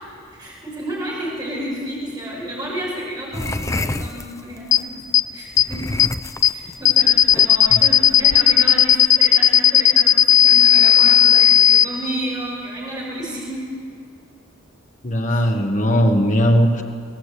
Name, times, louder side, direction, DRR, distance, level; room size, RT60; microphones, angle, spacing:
voice 1, 0.3-5.0 5.3-5.8 6.5-13.7 15.3-15.4 15.9-16.0, right 1 dB, 20° right, -4 dB, 5.3 m, -31 dB
sound 1, 3.3-4.8 5.5-8.9, left 2 dB, 15° left, 0.5 m, -29 dB
sound 2, 4.7-4.8 5.1-5.2 5.6-5.7 6.0-6.1 6.4-6.5 6.8-11.8, left 10 dB, 60° left, 0.6 m, -12 dB
voice 2, 15.0-16.8, equal, 35° left, 4 dB, 1.4 m, -18 dB
22.5 x 19.0 x 8.4 m, 2.4 s
head